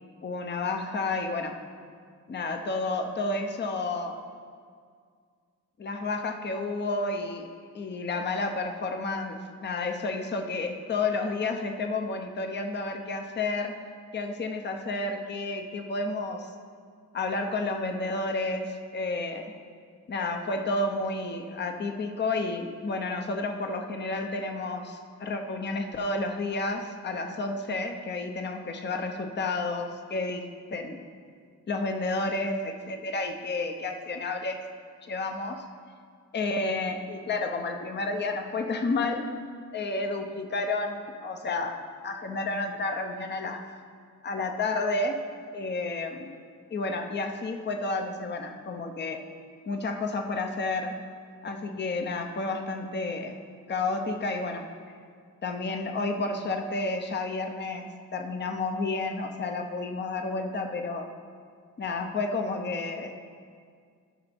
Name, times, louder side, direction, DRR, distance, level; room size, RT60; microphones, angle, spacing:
voice 1, 0.2-1.6 2.3-4.2 5.8-7.5 7.7-13.8 14.1-16.5 17.1-19.5 20.1-30.4 30.7-31.0 31.7-34.6 35.0-35.7 36.3-39.3 39.7-43.8 44.2-45.2 45.5-46.3 46.7-49.2 49.7-50.9 51.4-53.3 53.7-54.7 55.4-61.1 61.8-63.1, left 3 dB, 35° left, 4 dB, 0.8 m, -31 dB
14.5 x 5.7 x 3.5 m, 2.1 s
cardioid pair, 100°, 32 cm